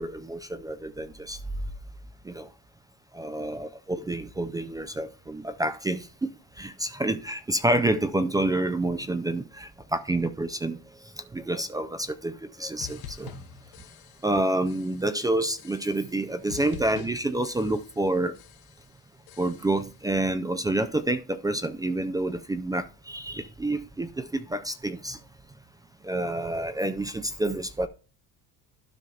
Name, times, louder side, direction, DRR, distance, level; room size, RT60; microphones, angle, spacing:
voice 1, 0.0-1.4 2.2-2.5 3.1-10.8 11.2-13.4 14.2-18.3 19.4-25.2 26.0-27.9, right 1 dB, 10° right, 0.3 m, -28 dB
sound 1, 12.8-14.4 14.7-15.2 15.6-16.2 16.5-18.1 18.3-18.9 19.3-19.9, left 10 dB, 75° left, 1.0 m, -46 dB
12.5 x 5.5 x 2.3 m
cardioid pair, 150°, 37 cm